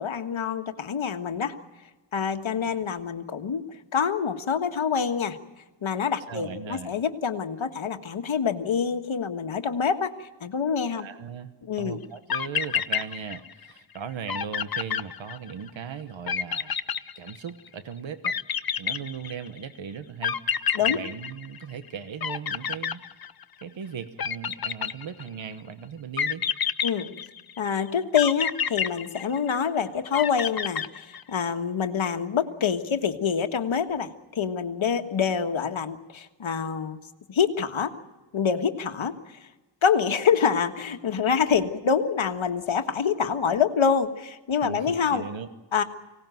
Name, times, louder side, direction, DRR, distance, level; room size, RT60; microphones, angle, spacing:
voice 1, 0.0-1.5 2.1-3.6 3.9-5.4 5.8-11.1 11.7-12.0 20.7-21.0 26.8-27.1 27.6-37.0 37.3-37.9 38.3-39.1 39.8-45.3 45.7-45.8, left 6 dB, 85° left, 7 dB, 1.6 m, -26 dB
voice 2, 6.3-7.0 10.9-16.7 17.2-18.4 18.8-20.4 20.8-23.0 23.6-26.4 44.6-45.5, right 7 dB, 75° right, 11 dB, 1.2 m, -38 dB
sound 1, 12.0-12.1 12.3-13.7 14.0-14.1 14.3-15.7 16.3-17.7 18.2-19.6 20.2-21.9 22.2-23.6 24.2-25.4 26.2-27.6 28.2-29.7 30.1-31.4, left 8 dB, 50° left, 0.8 m, -29 dB
24.5 x 18.0 x 9.2 m, 1.1 s
wide cardioid pair, 150°, 47 cm